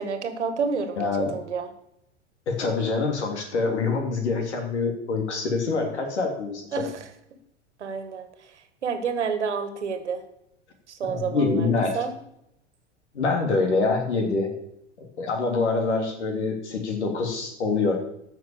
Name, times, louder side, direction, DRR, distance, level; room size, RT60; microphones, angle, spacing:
voice 1, 0.0-1.7 6.7-7.1 7.8-8.5 8.8-10.2 10.9-12.2, right 5 dB, 75° right, 8 dB, 1.9 m, -29 dB
voice 2, 1.0-1.3 2.5-6.8 11.0-11.9 13.1-14.5 15.2-18.0, left 4 dB, 70° left, 3 dB, 3.1 m, -25 dB
14.0 x 6.3 x 7.1 m, 0.78 s
figure-of-eight pair, 90°, 35 cm